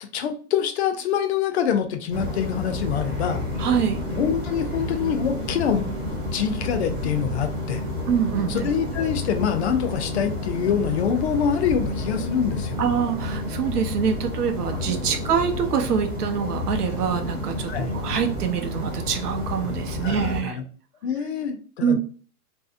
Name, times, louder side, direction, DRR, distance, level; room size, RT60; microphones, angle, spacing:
voice 1, 0.1-3.4 4.1-5.9 6.3-7.8 8.5-12.8 15.1-15.2 17.7-17.9 20.0-20.6 21.0-22.0, left 7 dB, 50° left, 7 dB, 0.4 m, -25 dB
sound 1, 2.1-20.4, left 2 dB, 5° right, 0.5 m, -30 dB
voice 2, 3.6-4.0 8.1-8.6 9.0-9.1 12.8-20.6 21.8-22.0, right 7 dB, 90° right, 6 dB, 0.7 m, -25 dB
2.6 x 2.0 x 2.4 m, 0.41 s
hypercardioid pair, 135°, 45 cm